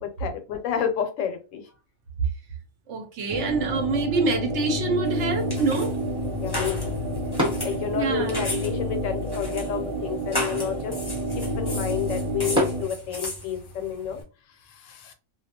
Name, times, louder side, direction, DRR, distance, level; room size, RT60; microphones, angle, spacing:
voice 1, 0.0-1.6 6.4-6.9 7.6-10.9 11.3-14.2 14.7-15.1, left 8 dB, 80° left, 0.9 m, -30 dB
voice 2, 2.9-5.9 7.9-8.4, right 4 dB, 70° right, 0.9 m, -26 dB
sound 1, 3.3-12.8, equal, 45° right, 0.4 m, -30 dB
sound 2, 3.6-13.7, equal, 5° right, 0.9 m, -36 dB
sound 3, 5.0-14.2, left 1 dB, 25° left, 0.6 m, -36 dB
2.3 x 2.1 x 2.8 m
omnidirectional pair, 1.3 m